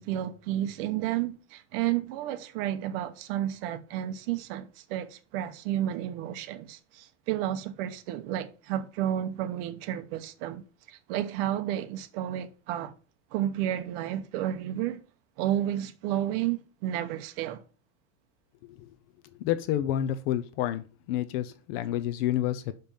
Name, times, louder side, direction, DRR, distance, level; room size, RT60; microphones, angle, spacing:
voice 1, 0.0-10.6 10.9-12.9 13.3-15.0 15.4-17.6, right 12 dB, 55° right, 0.9 m, -31 dB
voice 2, 19.4-22.7, left 12 dB, 55° left, 0.7 m, -29 dB
6.0 x 5.2 x 5.5 m
supercardioid pair, 170°, 35 cm